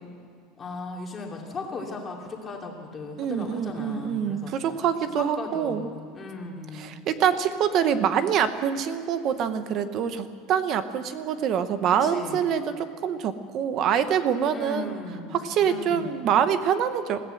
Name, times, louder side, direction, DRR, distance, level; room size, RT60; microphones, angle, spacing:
voice 1, 0.6-4.6 5.1-7.0 11.9-12.5 14.5-16.2, left 3 dB, 15° left, 0 dB, 2.7 m, -37 dB
voice 2, 3.2-5.9 6.7-14.9 15.3-17.2, right 8 dB, 35° right, 11 dB, 0.9 m, -25 dB
21.0 x 16.0 x 7.9 m, 2.3 s
cardioid pair, 175°, 0 cm